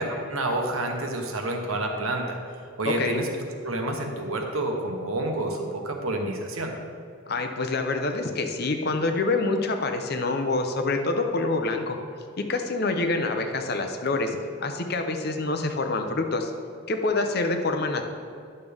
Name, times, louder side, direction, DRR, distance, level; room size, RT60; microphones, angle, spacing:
voice 1, 0.0-2.4 2.8-3.3 3.6-6.7, right 1 dB, 80° right, 2 dB, 1.2 m, -29 dB
voice 2, 2.8-3.2 7.3-12.0 12.4-16.5 16.9-18.0, left 3 dB, 50° left, 5 dB, 0.7 m, -26 dB
10.5 x 6.7 x 3.5 m, 2.4 s
head